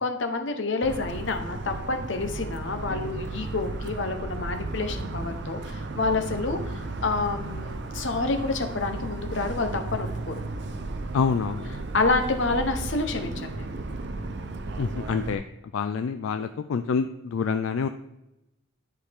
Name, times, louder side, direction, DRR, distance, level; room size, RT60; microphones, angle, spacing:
voice 1, 0.0-10.4 11.9-13.7, left 3 dB, 65° left, 6 dB, 0.9 m, -28 dB
Motor vehicle (road) / Siren, 0.8-15.4, right 2 dB, 60° right, 0.6 m, -34 dB
voice 2, 11.1-11.7 14.8-15.4 15.7-17.9, left 5 dB, 80° left, 9 dB, 0.4 m, -27 dB
10.5 x 4.9 x 3.5 m, 0.91 s
head